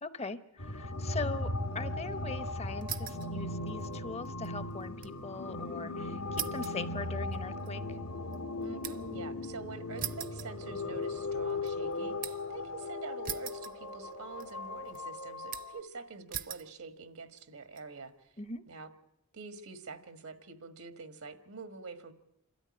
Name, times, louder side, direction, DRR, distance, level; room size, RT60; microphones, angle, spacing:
voice 1, 0.0-8.0 18.4-18.6, left 3 dB, 30° left, 13 dB, 0.8 m, -41 dB
sound 1, 0.6-15.8, left 2 dB, 75° left, 1.5 m, -38 dB
sound 2, 2.8-3.3 3.7-5.2 5.5-5.6 6.4-9.2 10.0-11.1 11.5-12.5 13.2-14.1 14.4-15.0 15.5-15.9 16.3-16.7 17.4-17.8, right 10 dB, 40° right, 0.7 m, -42 dB
voice 2, 8.6-18.3 18.7-18.9 19.3-22.1, right 4 dB, 80° right, 9 dB, 1.6 m, -46 dB
27.5 x 13.0 x 9.6 m, 0.85 s
head